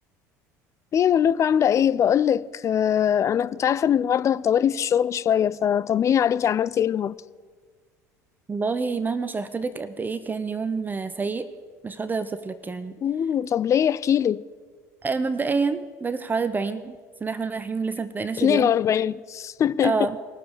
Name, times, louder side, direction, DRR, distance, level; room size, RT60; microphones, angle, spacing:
voice 1, 0.9-7.2 13.0-14.4 18.4-20.0, left 9 dB, 35° left, 0.4 m, -22 dB
voice 2, 8.5-11.5 11.8-13.0 15.0-17.0 17.2-18.7 19.8-20.2, right 4 dB, 20° right, 0.6 m, -27 dB
19.0 x 6.9 x 4.9 m
hypercardioid pair, 70°, 9 cm